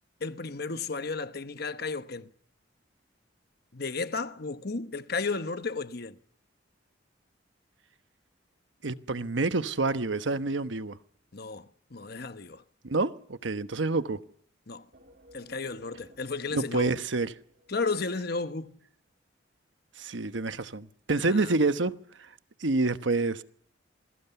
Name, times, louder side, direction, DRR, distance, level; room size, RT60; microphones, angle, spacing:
voice 1, 0.2-2.3 3.7-6.2 11.3-12.6 14.7-14.8 15.3-16.9 17.7-18.8 21.2-21.5, left 4 dB, 55° left, 1.1 m, -33 dB
voice 2, 8.8-11.0 12.8-14.2 16.5-17.3 20.0-22.3 22.6-23.4, right 3 dB, 75° right, 1.1 m, -28 dB
sound 1, 14.9-18.5, equal, 55° right, 3.1 m, -58 dB
27.0 x 21.0 x 7.0 m
head